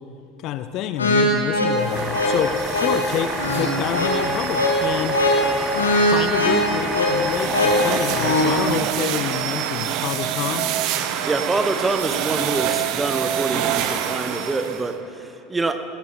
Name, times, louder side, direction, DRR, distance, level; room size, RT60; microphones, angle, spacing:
voice 1, 0.4-5.2 6.0-10.7, left 10 dB, 50° left, 11 dB, 0.6 m, -28 dB
sound 1, 1.0-8.6, left 1 dB, 80° left, 1.9 m, -21 dB
sound 2, 1.7-14.9, right 10 dB, 55° right, 0.8 m, -27 dB
sound 3, 1.9-8.8, left 2 dB, 10° left, 0.8 m, -32 dB
voice 2, 11.2-15.8, right 3 dB, 15° right, 8 dB, 1.0 m, -25 dB
19.5 x 12.5 x 4.4 m, 2.7 s
figure-of-eight pair, 75°, 0 cm